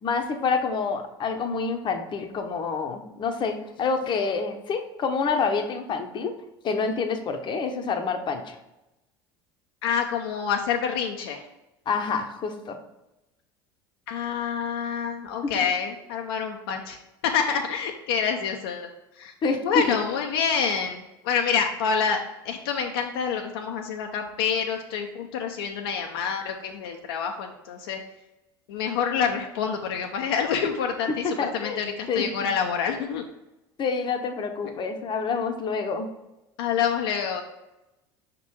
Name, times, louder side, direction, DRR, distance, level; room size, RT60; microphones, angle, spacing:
voice 1, 0.0-6.3 6.6-8.5 11.9-12.8 15.5-15.6 19.4-20.0 31.2-31.8 32.1-32.3 33.8-36.1, left 4 dB, 35° left, 6 dB, 0.8 m, -27 dB
voice 2, 9.8-11.4 14.1-17.0 17.2-18.9 19.2-19.3 19.6-28.0 28.7-33.2 36.6-37.4, left 7 dB, 65° left, 3 dB, 0.6 m, -27 dB
5.8 x 3.7 x 4.3 m, 0.95 s
figure-of-eight pair, 70°, 13 cm